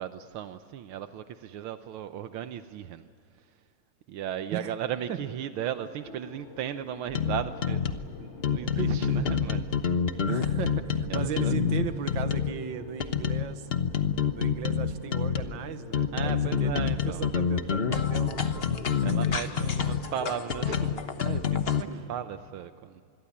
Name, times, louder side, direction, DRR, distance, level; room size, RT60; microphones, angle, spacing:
voice 1, 0.0-3.1 3.4-3.5 4.1-7.9 8.2-9.8 11.1-11.5 16.1-17.3 19.0-23.0, right 10 dB, 80° right, 9 dB, 1.7 m, -36 dB
sound 1, 6.0-21.5, left 6 dB, 65° left, 3.0 m, -47 dB
sound 2, 7.1-8.1 8.4-12.6 13.0-15.5 15.9-21.8, left 7 dB, 40° left, 1.0 m, -27 dB
voice 2, 8.8-9.3 10.3-13.7 14.3-18.6 19.5-19.9 21.9-22.0, right 8 dB, 65° right, 10 dB, 1.9 m, -36 dB
27.0 x 22.0 x 8.6 m, 2.2 s
omnidirectional pair, 2.3 m